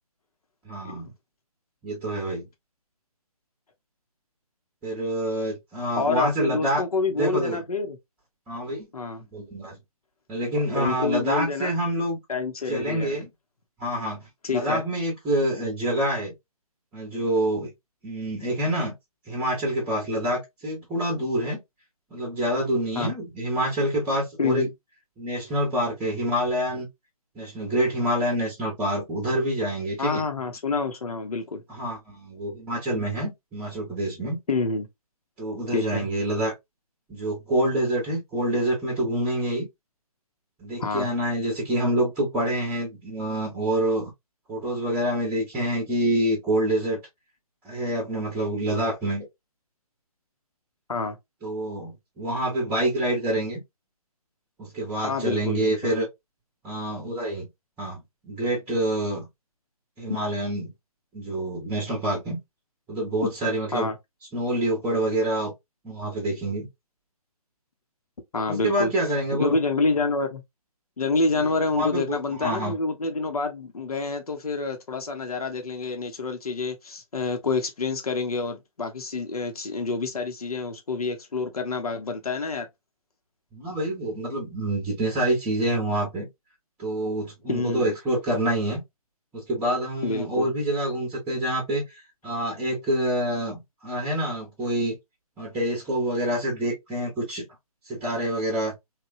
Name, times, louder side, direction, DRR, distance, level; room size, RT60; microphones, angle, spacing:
voice 1, 0.6-1.1 1.8-2.5 4.8-6.8 7.1-7.6 8.5-8.9 9.3-9.8 10.3-12.2 12.7-13.3 13.8-16.3 16.9-17.7 18.0-18.9 19.3-21.6 22.1-24.7 25.2-26.9 27.3-30.2 31.7-34.4 35.4-36.5 37.1-39.7 40.6-44.1 44.5-47.0 47.6-49.2 51.4-53.6 54.6-56.1 56.6-57.5 57.8-59.3 60.0-60.7 61.1-62.4 62.9-63.9 64.3-65.5 65.8-66.7 68.5-69.6 71.4-71.5 71.7-72.7 83.5-86.3 86.8-88.8 89.3-95.0 95.4-97.4 97.9-98.7, right 1 dB, 5° right, 0.7 m, -27 dB
voice 2, 6.0-8.0 8.9-9.2 10.7-11.8 12.3-13.2 14.4-14.8 22.9-23.1 24.4-24.7 30.0-31.6 34.5-34.9 35.7-36.1 40.8-41.1 50.9-51.2 55.0-55.9 60.1-60.2 63.7-63.9 68.3-68.9 69.3-70.4 71.0-82.7 87.5-87.9 90.0-90.5, left 3 dB, 75° left, 0.7 m, -27 dB
3.0 x 2.1 x 2.4 m
figure-of-eight pair, 140°, 19 cm